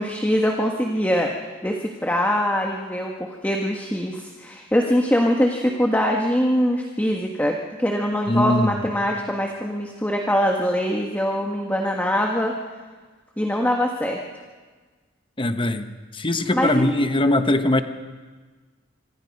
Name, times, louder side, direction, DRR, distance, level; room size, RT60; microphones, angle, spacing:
voice 1, 0.0-1.3 1.6-12.6 13.4-14.2 16.5-16.9, equal, 10° left, 1 dB, 1.5 m, -23 dB
voice 2, 8.3-8.8 15.4-15.9 16.1-17.8, left 1 dB, 25° left, 8 dB, 1.1 m, -21 dB
26.0 x 25.0 x 5.4 m, 1.4 s
head